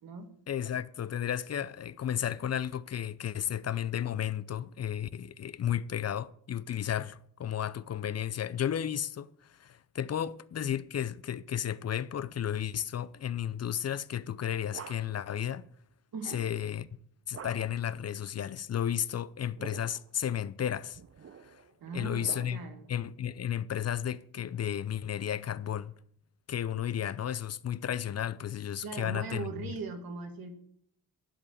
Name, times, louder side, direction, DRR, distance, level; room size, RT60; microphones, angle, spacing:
voice 1, 0.5-9.3 9.6-15.6 16.2-16.9 17.3-21.0 21.4-21.6 21.9-22.6 22.9-25.9 26.5-29.7, left 10 dB, 45° left, 0.6 m, -33 dB
sound 1, 14.2-15.3 17.3-17.9 19.3-20.1 20.9-22.9, right 7 dB, 40° right, 0.8 m, -48 dB
voice 2, 21.8-22.8 28.8-30.6, right 4 dB, 85° right, 2.1 m, -39 dB
11.5 x 5.4 x 8.8 m
cardioid pair, 85°, 35 cm